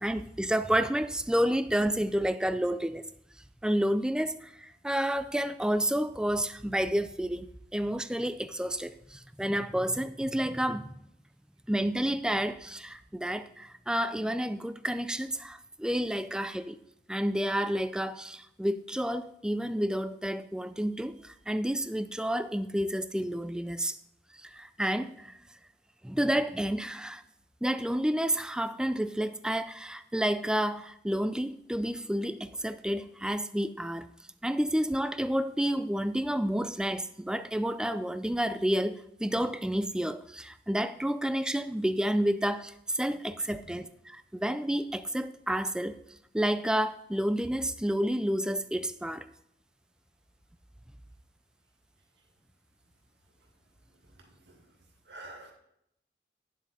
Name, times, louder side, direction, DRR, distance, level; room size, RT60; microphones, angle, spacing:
voice 1, 0.0-3.0 3.6-10.9 11.7-16.8 17.1-24.0 24.4-25.3 26.0-27.2 27.6-34.1 34.4-46.0 46.3-49.3, equal, 5° right, 0.4 m, -30 dB
voice 2, 54.0-54.7 55.1-55.5, right 2 dB, 80° right, 2.3 m, -49 dB
9.7 x 7.3 x 4.1 m
head